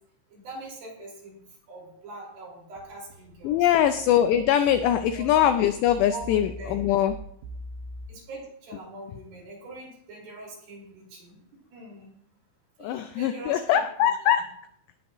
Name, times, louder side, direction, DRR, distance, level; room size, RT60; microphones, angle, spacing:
voice 1, 0.3-1.4 1.7-3.7 4.4-4.5 5.1-5.3 6.1-6.8 8.1-11.4 11.7-12.1 12.8-13.9, right 2 dB, 50° right, -3 dB, 6.5 m, -43 dB
sound 1, 2.8-8.1, right 1 dB, 65° right, 3.0 m, -42 dB
voice 2, 3.4-7.2 12.8-14.4, left 10 dB, 85° left, 9 dB, 2.5 m, -22 dB
18.0 x 12.5 x 3.1 m, 0.70 s
omnidirectional pair, 5.6 m